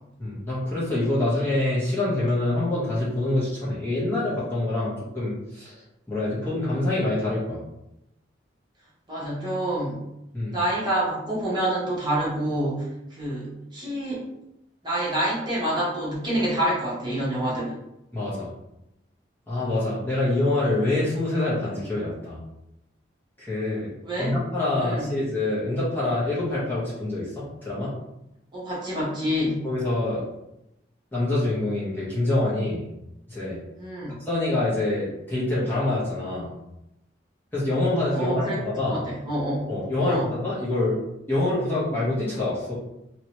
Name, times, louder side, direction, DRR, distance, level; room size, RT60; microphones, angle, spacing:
voice 1, 0.2-5.7 6.1-7.6 10.3-10.6 18.1-18.5 19.5-22.4 23.4-23.9 24.2-27.9 29.6-30.2 31.1-32.9 33.3-33.6 34.2-36.6 37.5-39.1 39.7-41.0 41.3-42.7, left 2 dB, 10° left, -9 dB, 1.0 m, -26 dB
voice 2, 9.1-10.0 10.5-12.8 13.1-14.3 14.8-17.7 24.0-24.4 24.8-25.1 28.5-29.6 33.8-34.2 38.1-38.6 38.9-39.7 40.0-40.3, right 1 dB, 25° right, -7 dB, 1.0 m, -27 dB
2.9 x 2.9 x 2.9 m, 0.88 s
head